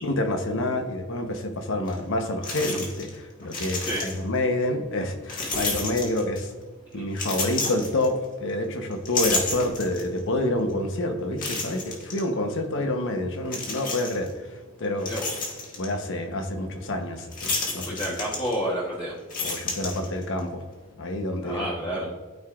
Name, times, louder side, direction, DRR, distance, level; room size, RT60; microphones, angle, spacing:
voice 1, 0.0-6.5 6.9-14.3 14.8-15.1 15.8-18.2 19.4-20.6 21.0-21.7 22.0-22.1, left 1 dB, 65° left, 4 dB, 1.0 m, -28 dB
key rattle, 1.9-2.0 2.4-3.2 3.4-4.4 5.3-6.5 7.1-8.5 8.9-10.2 10.7-10.8 11.4-12.2 13.5-14.3 14.8-15.9 17.3-18.8 19.2-20.4, left 3 dB, 40° left, 1.7 m, -31 dB
voice 2, 17.9-19.1 21.4-22.1, equal, 25° left, -6 dB, 1.1 m, -29 dB
13.0 x 4.8 x 2.5 m, 1.3 s
head